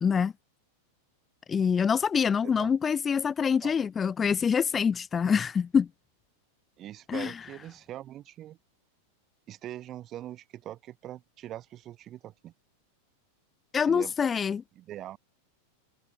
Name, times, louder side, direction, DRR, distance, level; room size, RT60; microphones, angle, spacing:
voice 1, 0.0-0.3 1.5-5.9 7.1-7.3 13.7-14.6, left 6 dB, 20° left, 1.5 m, -25 dB
voice 2, 6.8-8.6 9.5-12.5 13.8-14.1 14.8-15.2, right 13 dB, 30° right, 5.9 m, -42 dB
figure-of-eight pair, 90°, 0 cm